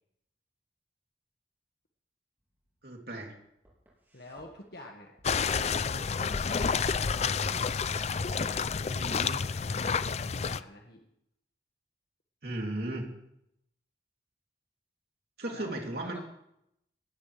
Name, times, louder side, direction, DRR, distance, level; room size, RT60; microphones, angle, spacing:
Walk footsteps, 2.4-10.6, equal, 10° right, 7.9 m, -58 dB
voice 1, 2.8-3.3 8.9-9.4 12.4-13.1 15.4-16.2, right 1 dB, 60° right, 0 dB, 3.1 m, -36 dB
voice 2, 4.1-7.6 8.4-8.9 9.7-11.0 15.5-15.7 16.0-16.2, left 1 dB, 60° left, 0 dB, 1.7 m, -48 dB
sound 1, 5.2-10.6, left 5 dB, 40° left, 0.5 m, -29 dB
19.5 x 18.5 x 3.4 m, 0.79 s
head